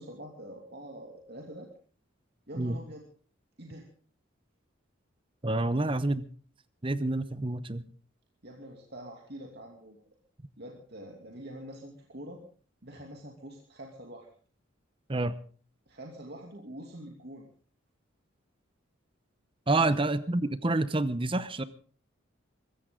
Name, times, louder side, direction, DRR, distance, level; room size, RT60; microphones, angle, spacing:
voice 1, 0.0-1.7 2.5-3.0 3.6-3.9 5.7-6.0 8.4-10.0 10.6-12.4 12.8-14.3 15.9-17.5 19.8-20.0, right 1 dB, 55° right, 0 dB, 2.8 m, -45 dB
voice 2, 5.4-6.3 6.8-7.8 15.1-15.3 19.7-21.6, right 2 dB, 25° right, 14 dB, 0.9 m, -28 dB
23.5 x 15.5 x 3.8 m, 0.42 s
head